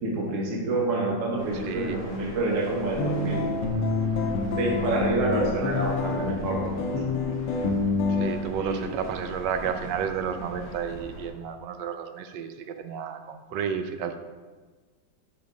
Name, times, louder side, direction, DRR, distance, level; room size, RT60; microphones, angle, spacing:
voice 1, 0.0-3.5 4.6-6.8 8.6-8.8, right 2 dB, 50° right, -2 dB, 1.3 m, -27 dB
sound 1, 1.4-11.3, right 1 dB, 55° left, 2.0 m, -42 dB
voice 2, 1.5-2.0 8.1-14.1, right 7 dB, 75° right, 8 dB, 1.2 m, -32 dB
sound 2, 3.0-8.3, left 3 dB, 85° left, 1.4 m, -27 dB
7.2 x 4.9 x 3.8 m, 1.3 s
omnidirectional pair, 2.0 m